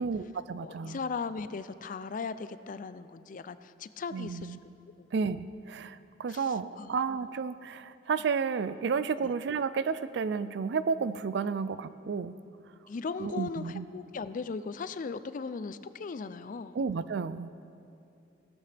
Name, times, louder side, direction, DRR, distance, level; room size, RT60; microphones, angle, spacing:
voice 1, 0.0-1.0 4.1-4.6 5.1-12.3 13.2-13.9 16.7-17.6, right 5 dB, 65° right, 14 dB, 0.4 m, -32 dB
voice 2, 0.6-4.6 5.0-5.1 6.3-6.9 9.2-9.3 12.9-16.8, left 5 dB, 45° left, 13 dB, 0.4 m, -38 dB
16.5 x 12.5 x 3.4 m, 2.6 s
head